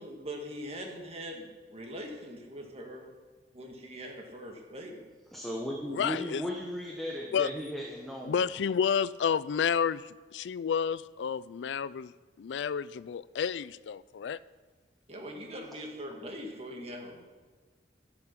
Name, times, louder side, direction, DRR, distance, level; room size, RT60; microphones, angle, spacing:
voice 1, 0.0-3.1 3.5-5.0 15.1-17.2, equal, 35° right, 1.8 m, -42 dB
voice 2, 5.3-8.4, equal, ahead, 1.1 m, -36 dB
voice 3, 5.9-6.4 7.3-7.5 8.3-12.1 12.4-14.4, left 7 dB, 80° left, 0.4 m, -30 dB
12.0 x 6.9 x 5.8 m
head